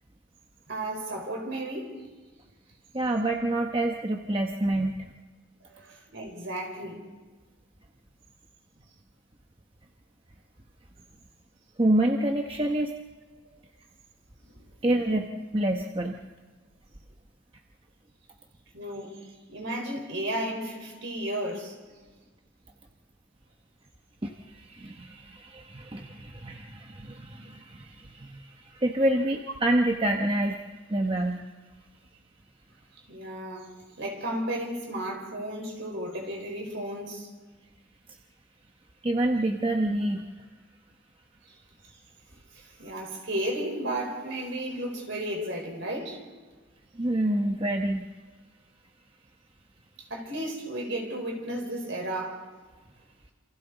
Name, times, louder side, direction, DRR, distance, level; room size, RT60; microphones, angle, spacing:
voice 1, 0.7-1.9 5.7-7.1 13.5-13.6 14.5-14.6 18.7-22.0 33.1-33.7 34.0-37.3 42.5-46.2 50.1-52.4, right 1 dB, 60° right, 4.6 m, -34 dB
voice 2, 2.9-4.9 11.8-12.9 14.8-16.2 24.2-30.6 30.9-31.5 39.0-40.2 46.9-48.1, right 1 dB, 25° right, 0.9 m, -27 dB
28.0 x 27.0 x 4.1 m
head